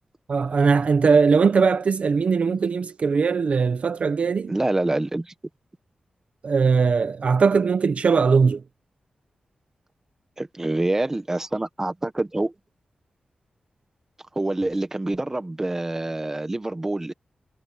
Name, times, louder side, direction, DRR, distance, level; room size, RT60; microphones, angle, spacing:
voice 1, 0.3-4.5 6.4-8.6, right 5 dB, 55° right, 0.9 m, -20 dB
voice 2, 4.5-5.3 10.4-12.5 14.3-17.1, right 2 dB, 20° right, 1.4 m, -26 dB
wide cardioid pair, 120°, 3 cm